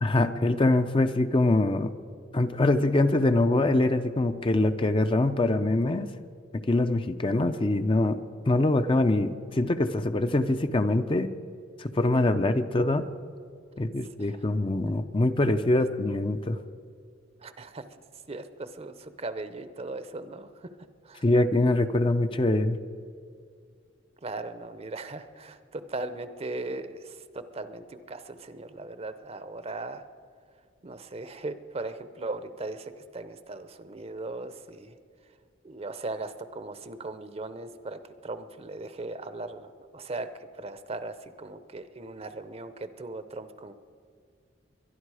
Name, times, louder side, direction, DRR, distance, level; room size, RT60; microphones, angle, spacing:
voice 1, 0.0-1.9 2.3-6.1 6.5-8.2 8.5-11.3 11.8-13.1 13.8-16.6 21.2-22.8, left 2 dB, 30° left, 9 dB, 0.6 m, -24 dB
voice 2, 17.4-17.8 18.3-20.5 21.1-21.2 24.2-30.0 30.8-34.9 35.6-40.3 40.6-43.7, right 2 dB, 35° right, 12 dB, 0.7 m, -38 dB
23.0 x 11.0 x 4.9 m, 2.2 s
head